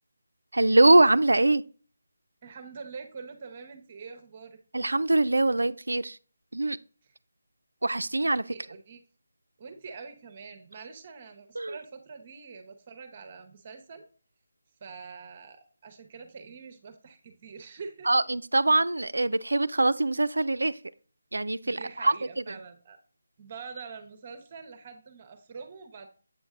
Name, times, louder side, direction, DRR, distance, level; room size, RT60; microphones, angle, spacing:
voice 1, 0.5-1.6 4.7-6.2 6.5-6.8 7.8-8.4 11.6-11.7 18.1-20.8 21.3-22.1 22.5-22.6, right 2 dB, 85° right, 0.3 m, -23 dB
voice 2, 2.4-4.6 7.0-7.1 8.5-9.0 9.6-14.0 14.8-18.1 19.1-19.2 21.6-23.0 23.4-26.1, right 5 dB, 35° right, 0.7 m, -45 dB
8.0 x 5.2 x 2.4 m
figure-of-eight pair, 160°, 0 cm